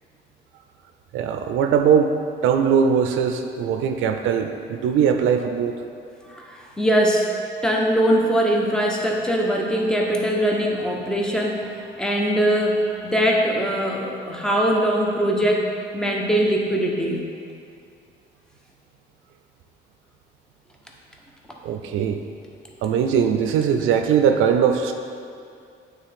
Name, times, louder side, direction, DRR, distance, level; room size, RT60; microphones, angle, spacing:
voice 1, 1.1-2.2 2.4-5.7 21.6-22.2 22.8-24.9, right 7 dB, 90° right, 6 dB, 0.4 m, -20 dB
voice 2, 6.3-7.3 7.6-15.7 15.9-17.3, equal, 5° left, -1 dB, 0.9 m, -21 dB
8.8 x 3.8 x 3.5 m, 2.4 s
cardioid pair, 90°, 20 cm